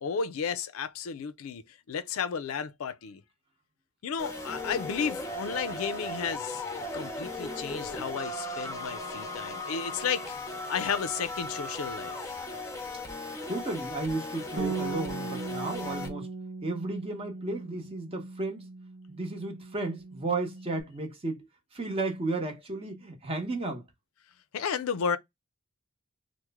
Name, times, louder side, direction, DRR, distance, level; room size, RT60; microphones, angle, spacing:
voice 1, 0.0-1.6 1.9-3.2 4.0-6.6 6.9-10.4 10.7-12.3 24.5-25.2, left 6 dB, 75° left, 0.4 m, -33 dB
sound 1, 4.2-16.1, left 2 dB, 15° left, 0.7 m, -37 dB
voice 2, 13.5-16.3 16.6-18.7 19.1-21.5 21.7-23.8, right 2 dB, 25° right, 0.9 m, -33 dB
Bass guitar, 14.6-20.8, right 4 dB, 65° right, 0.7 m, -39 dB
3.0 x 2.1 x 3.4 m
head